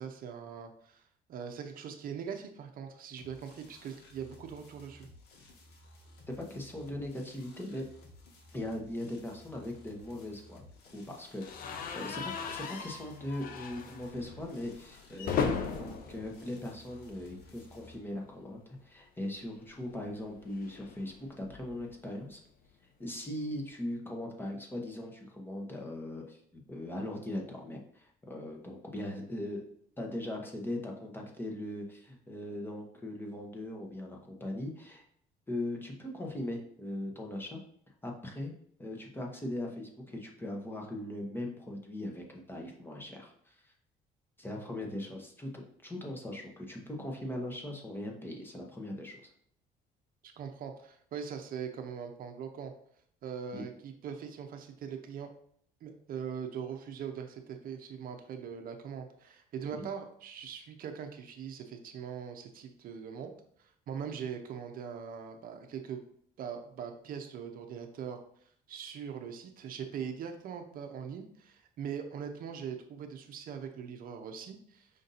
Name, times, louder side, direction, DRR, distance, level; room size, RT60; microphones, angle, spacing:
voice 1, 0.0-5.1 50.2-52.7 53.2-55.3 55.8-63.3 63.6-66.0 66.4-68.2 68.7-74.9, right 7 dB, 60° right, 5 dB, 0.6 m, -41 dB
sound 1, 3.2-17.9, left 1 dB, 75° left, 1.0 m, -56 dB
voice 2, 6.4-7.8 8.5-15.4 15.8-22.4 23.0-29.6 30.0-35.0 35.5-37.6 38.0-38.5 38.8-43.7 44.4-49.2 53.5-53.6 59.7-59.8, left 1 dB, 10° left, 0 dB, 0.9 m, -40 dB
sound 2, 11.4-17.5 17.8-18.0 18.2-18.3 19.6-21.9, left 6 dB, 60° left, 0.6 m, -38 dB
5.1 x 2.6 x 4.0 m, 0.65 s
cardioid pair, 110°, 17 cm